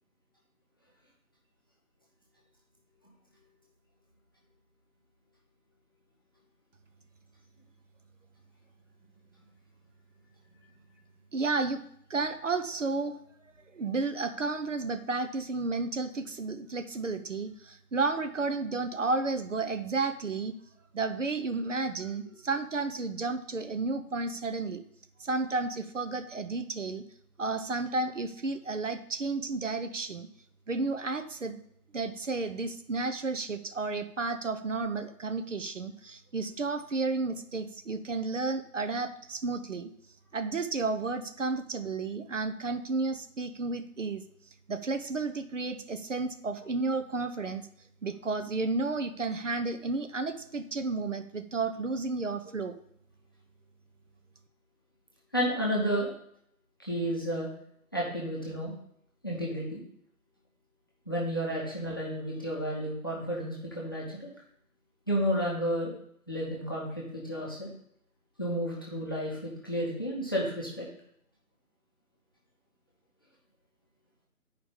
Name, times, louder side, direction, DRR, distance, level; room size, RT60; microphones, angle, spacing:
voice 1, 11.3-11.8 12.1-13.2 13.7-20.5 20.9-24.8 25.2-27.0 27.4-30.3 30.7-31.6 31.9-39.9 40.3-44.2 44.7-47.7 48.0-52.8, right 3 dB, 55° right, 10 dB, 0.7 m, -32 dB
voice 2, 55.3-56.1 56.8-57.5 57.9-58.7 59.2-59.8 61.1-64.3 65.1-65.9 66.3-67.7 68.4-70.9, equal, 15° left, -4 dB, 0.9 m, -31 dB
10.5 x 4.8 x 3.7 m, 0.70 s
figure-of-eight pair, 170°, 45 cm